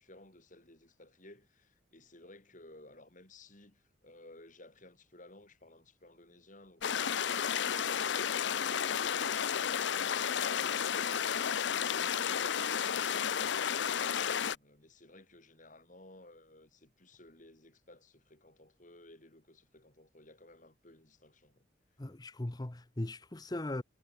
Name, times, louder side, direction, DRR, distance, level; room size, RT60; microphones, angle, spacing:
voice 1, 0.0-12.5 12.8-21.7, left 1 dB, 40° left, 6.0 m, -57 dB
sound 1, 6.8-14.6, left 8 dB, 65° left, 0.6 m, -32 dB
voice 2, 22.0-23.8, left 1 dB, 20° left, 0.8 m, -38 dB
head